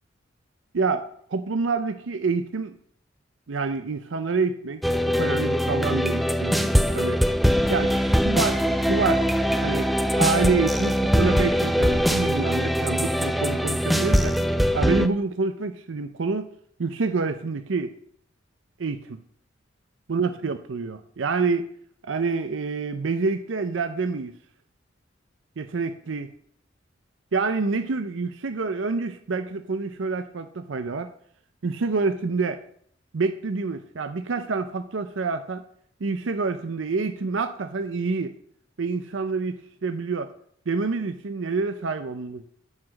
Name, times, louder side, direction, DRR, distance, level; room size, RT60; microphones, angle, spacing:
voice 1, 0.7-2.7 3.5-7.2 7.7-9.3 9.6-9.9 10.2-14.4 14.7-16.5 16.8-17.9 18.8-19.2 20.1-21.7 22.0-24.3 25.6-26.3 27.3-31.1 31.6-32.6 33.1-35.6 36.0-38.3 38.8-40.3 40.7-42.5, right 4 dB, 90° right, 9 dB, 0.6 m, -27 dB
sound 1, 4.8-15.1, equal, ahead, 0.4 m, -22 dB
9.6 x 4.9 x 6.3 m, 0.63 s
head